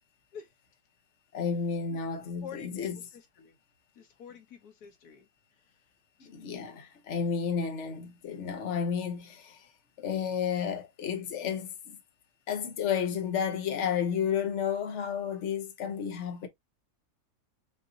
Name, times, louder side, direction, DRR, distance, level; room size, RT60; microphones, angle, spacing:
voice 1, 1.3-3.0 6.2-9.7 10.0-12.0 12.5-16.5, left 7 dB, 55° left, 1.3 m, -32 dB
voice 2, 2.4-3.6 3.9-5.3 5.6-5.7 6.2-6.3, left 8 dB, 85° left, 1.6 m, -48 dB
5.8 x 2.6 x 2.8 m
omnidirectional pair, 1.6 m